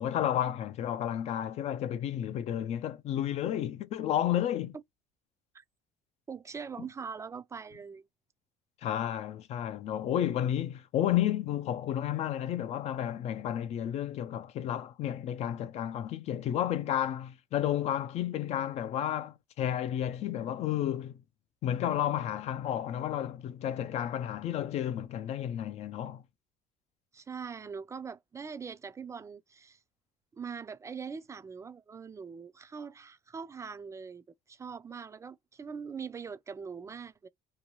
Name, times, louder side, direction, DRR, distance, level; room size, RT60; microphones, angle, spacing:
voice 1, 0.0-4.8 8.8-21.1 21.6-26.2, left 11 dB, 50° left, 0.4 m, -32 dB
voice 2, 6.3-8.1 27.1-29.8 30.3-37.3, right 6 dB, 20° right, 0.4 m, -42 dB
2.6 x 2.2 x 3.0 m
cardioid pair, 125°, 14 cm